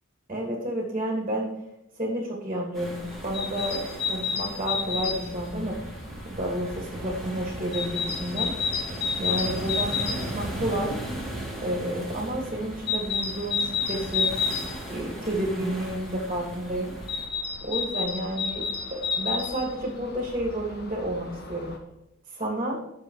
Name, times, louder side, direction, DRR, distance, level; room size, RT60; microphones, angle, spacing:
voice 1, 0.3-1.5 2.0-5.8 6.3-8.5 9.2-11.0 11.6-14.3 14.9-16.9 17.6-21.7 22.3-22.8, right 1 dB, 30° right, -2 dB, 2.7 m, -30 dB
sound 1, 2.7-17.3, right 1 dB, ahead, 3.3 m, -37 dB
sound 2, 3.0-21.8, left 5 dB, 55° left, 1.7 m, -32 dB
9.9 x 6.9 x 5.0 m, 0.87 s
head